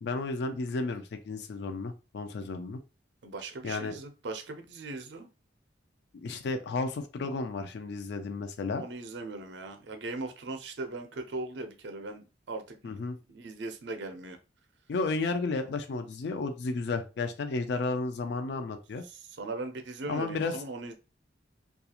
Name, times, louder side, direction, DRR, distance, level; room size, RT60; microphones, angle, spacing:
voice 1, 0.0-2.8 3.6-4.0 6.1-8.8 12.8-13.2 14.9-19.0 20.1-20.6, left 3 dB, 65° left, 7 dB, 0.4 m, -33 dB
voice 2, 3.2-5.3 8.8-13.0 13.3-14.4 19.1-20.9, right 2 dB, 65° right, 6 dB, 0.5 m, -39 dB
2.4 x 2.3 x 2.8 m, 0.31 s
head